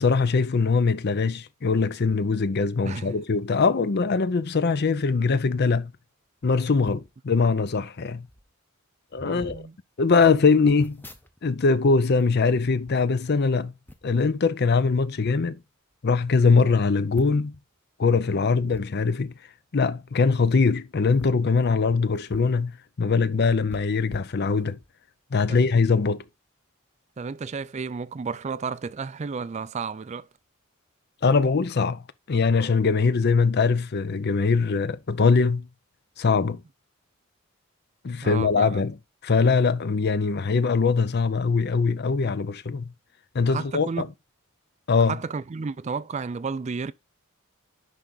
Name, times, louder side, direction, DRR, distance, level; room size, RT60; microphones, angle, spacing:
voice 1, 0.0-5.9 6.4-8.3 9.1-9.6 10.0-11.1 11.4-13.7 14.0-15.6 16.0-17.5 18.0-19.3 19.7-22.7 23.0-24.8 25.3-26.2 31.2-32.0 32.3-35.7 36.2-36.6 38.0-39.0 39.2-42.9 43.3-44.1 44.9-45.2, left 4 dB, 50° left, 0.5 m, -22 dB
voice 2, 2.8-3.2 9.2-9.7 18.3-18.7 25.5-25.7 27.2-30.3 38.2-38.8 43.4-44.1 45.1-46.9, right 5 dB, 30° right, 0.4 m, -32 dB
sound 1, 6.8-7.1 7.9-8.0 8.3-8.5 9.1-9.7 10.7-11.7 12.0-13.4 13.9-14.2 15.0-15.4 15.9-16.0 16.2-16.3 17.1-17.6 18.7-18.8 20.3-20.5 21.1-22.6 22.9-23.0 23.7-24.9 25.4-25.5, equal, 10° left, 0.7 m, -46 dB
10.5 x 3.8 x 3.9 m
head